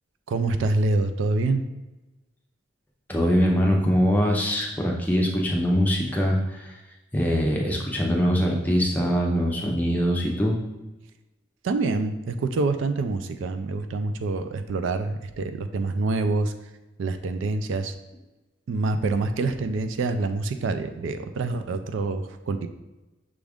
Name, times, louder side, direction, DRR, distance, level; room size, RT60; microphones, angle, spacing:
voice 1, 0.3-1.7 11.6-16.5 17.0-17.9 18.7-22.7, right 3 dB, 75° right, 9 dB, 0.3 m, -26 dB
voice 2, 3.1-6.8 7.1-10.6, equal, 10° left, -1 dB, 0.5 m, -23 dB
6.1 x 2.4 x 3.4 m, 1.1 s
head